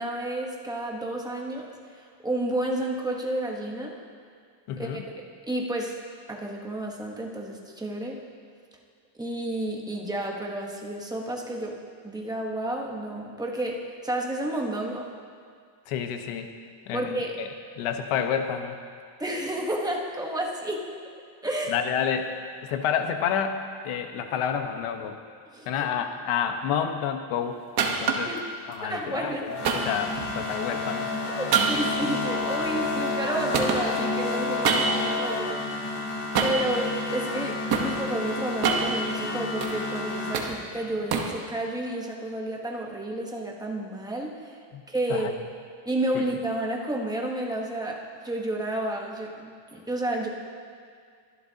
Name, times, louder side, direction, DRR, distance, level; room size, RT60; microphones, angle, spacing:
voice 1, 0.0-1.7 1.9-4.0 4.8-5.9 6.3-8.2 9.2-11.8 12.0-15.1 16.9-17.4 19.2-20.9 21.4-21.8 25.5-25.7 28.3-28.4 28.8-29.4 31.4-36.1 36.4-44.6 44.9-45.3 45.8-50.3, right 1 dB, 10° right, 0 dB, 1.1 m, -31 dB
voice 2, 4.7-5.0 15.9-16.5 16.9-17.5 17.8-18.8 21.7-22.3 22.6-25.1 25.7-27.6 27.9-28.3 28.7-29.5 29.8-31.1 44.7-44.8 45.1-45.3 46.1-46.3, left 8 dB, 80° left, 6 dB, 1.2 m, -29 dB
sound 1, 27.8-28.4 29.6-30.6 31.5-33.3 33.5-35.2 36.3-36.7 37.3-37.9 38.4-39.8 40.1-41.4, right 5 dB, 50° right, 1.3 m, -27 dB
sound 2, 29.3-40.4, left 3 dB, 35° left, 4.0 m, -30 dB
23.5 x 11.5 x 2.8 m, 2.2 s
cardioid pair, 170°, 50 cm